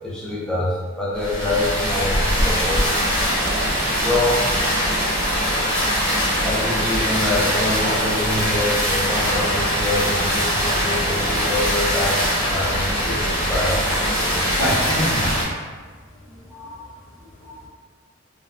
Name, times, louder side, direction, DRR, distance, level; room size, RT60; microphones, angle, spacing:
voice 1, 0.0-2.9 3.9-4.6 6.3-14.4 16.3-16.8 17.2-17.6, left 2 dB, 5° left, -8 dB, 0.5 m, -26 dB
sound 1, 1.1-15.4, equal, 30° left, 1.1 m, -22 dB
voice 2, 14.5-15.5 16.9-17.1, equal, 80° left, -5 dB, 0.8 m, -25 dB
3.4 x 2.3 x 2.2 m, 1.5 s
head